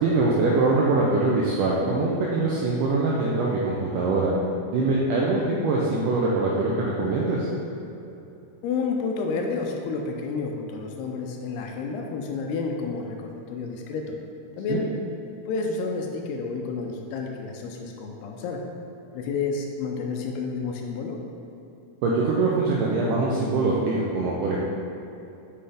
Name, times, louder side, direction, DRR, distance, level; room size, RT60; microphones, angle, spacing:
voice 1, 0.0-4.3 4.7-7.5 14.7-14.8 22.0-24.6, right 3 dB, 85° right, -4 dB, 1.8 m, -23 dB
voice 2, 8.6-14.0 14.6-14.9 15.5-18.6 19.1-21.2, left 4 dB, 85° left, 2 dB, 2.6 m, -30 dB
7.7 x 5.5 x 3.4 m, 2.9 s
omnidirectional pair, 4.6 m